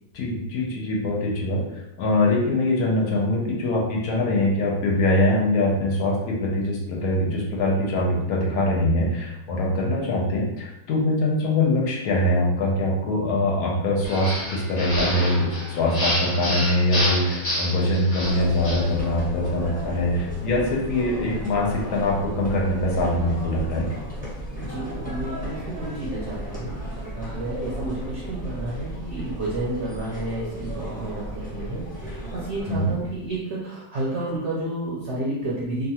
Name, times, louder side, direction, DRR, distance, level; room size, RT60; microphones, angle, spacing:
voice 1, 0.1-1.6 2.0-23.9 32.7-32.9, left 1 dB, 75° left, -1 dB, 1.1 m, -23 dB
sound 1, 14.0-18.9, equal, 40° left, 0.9 m, -28 dB
sound 2, 18.2-33.4, right 1 dB, 5° left, 0.8 m, -34 dB
voice 2, 24.6-35.9, right 2 dB, 60° right, -5 dB, 0.8 m, -31 dB
2.9 x 2.3 x 2.8 m, 0.86 s
omnidirectional pair, 1.6 m